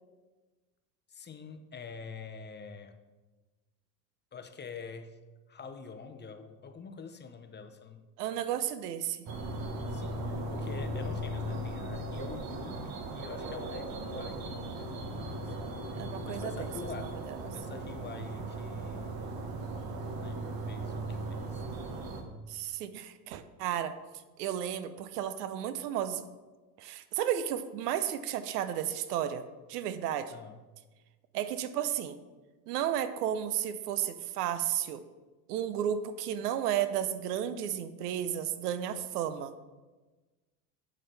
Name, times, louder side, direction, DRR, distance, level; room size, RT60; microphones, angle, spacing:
voice 1, 1.1-3.0 4.3-5.2 5.5-8.1 9.9-15.8 16.3-17.2 17.5-19.1 20.2-21.6 30.3-30.6, left 5 dB, 20° left, 8 dB, 0.7 m, -46 dB
voice 2, 8.2-9.3 16.0-17.4 22.5-24.0 24.4-26.2 26.8-29.4 29.7-30.3 31.3-32.2 32.7-35.0 35.5-39.5, right 10 dB, 80° right, 12 dB, 0.7 m, -33 dB
sound 1, 9.3-22.2, right 1 dB, 50° right, 1.5 m, -37 dB
8.5 x 7.4 x 3.4 m, 1.2 s
hypercardioid pair, 80°, 47 cm